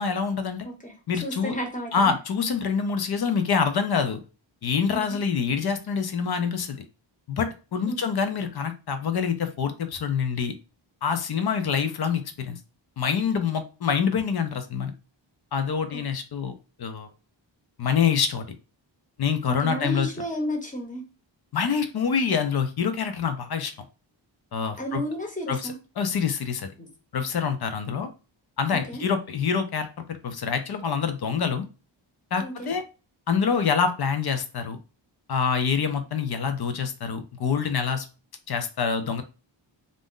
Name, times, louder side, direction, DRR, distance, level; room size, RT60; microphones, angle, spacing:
voice 1, 0.0-0.7 1.1-1.5 1.9-4.2 4.6-6.8 7.3-10.5 11.0-12.6 13.0-14.9 15.5-16.5 16.8-17.1 17.8-18.5 19.2-20.1 21.5-23.7 24.5-25.0 25.5-26.7 27.1-28.1 28.6-29.9 30.2-31.7 32.3-32.8 33.3-34.8 35.3-38.1 38.5-39.2, left 6 dB, 55° left, 8 dB, 0.5 m, -26 dB
voice 2, 0.6-2.1 4.9-5.2 7.9-8.0 15.9-16.1 19.5-21.0 24.8-25.7 26.8-26.9 28.7-29.0 32.4-32.7, equal, 15° left, 0 dB, 0.8 m, -33 dB
2.5 x 2.0 x 3.6 m, 0.32 s
wide cardioid pair, 100°, 47 cm